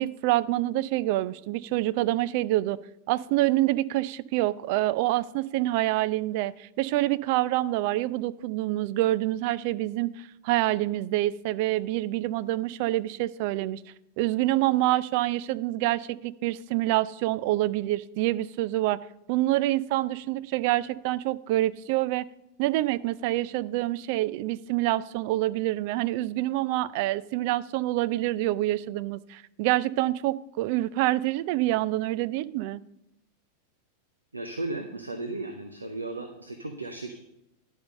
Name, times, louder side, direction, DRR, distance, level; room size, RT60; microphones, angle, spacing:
voice 1, 0.0-2.8 3.1-13.8 14.2-19.0 19.3-22.2 22.6-32.8, right 16 dB, 45° right, 0.4 m, -26 dB
voice 2, 34.3-37.1, right 2 dB, 80° right, 0.8 m, -35 dB
11.0 x 5.4 x 6.4 m
figure-of-eight pair, 90°, 0 cm